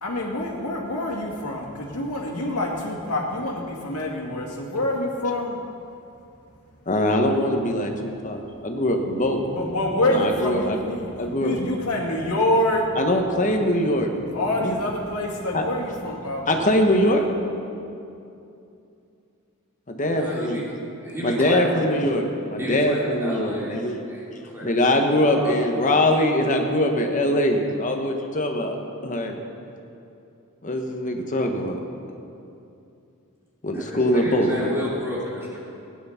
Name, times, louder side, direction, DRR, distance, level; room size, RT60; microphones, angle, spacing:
voice 1, 0.0-5.6 9.5-11.1 11.4-12.9 14.3-16.5, left 1 dB, 90° left, -1 dB, 2.1 m, -26 dB
voice 2, 6.9-9.4 10.1-10.8 11.2-11.7 12.9-14.1 14.6-14.8 15.5-15.6 16.5-17.2 19.9-20.6 21.2-24.0 24.6-28.8 29.0-29.4 30.6-31.8 33.6-34.8, left 1 dB, 35° left, 3 dB, 1.2 m, -22 dB
voice 3, 20.1-20.6 21.0-21.9 22.6-23.8 24.1-25.7 33.7-35.6, equal, 10° right, -7 dB, 2.9 m, -32 dB
16.0 x 9.8 x 5.8 m, 2.7 s
head